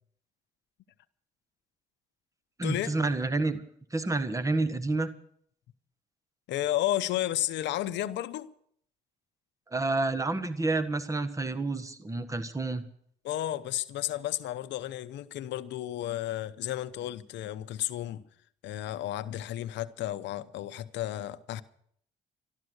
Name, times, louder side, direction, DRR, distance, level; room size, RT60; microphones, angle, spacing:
voice 1, 2.6-3.6 3.9-5.1 9.7-12.8, right 2 dB, 15° right, 1.5 m, -29 dB
voice 2, 6.5-8.5 13.2-18.2 18.6-21.6, left 13 dB, 80° left, 0.8 m, -32 dB
13.0 x 12.5 x 8.1 m
cardioid pair, 75°, 18 cm